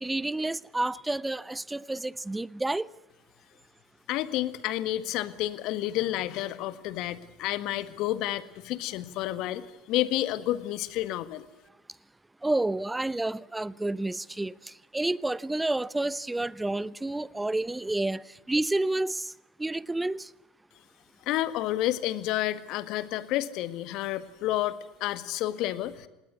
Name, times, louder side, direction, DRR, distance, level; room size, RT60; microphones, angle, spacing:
voice 1, 0.0-2.9 12.4-19.3 19.6-20.3, right 2 dB, 10° right, 0.9 m, -30 dB
voice 2, 4.1-11.5 21.3-26.1, left 14 dB, 60° left, 1.7 m, -30 dB
27.0 x 19.5 x 8.2 m
hypercardioid pair, 75°, 0 cm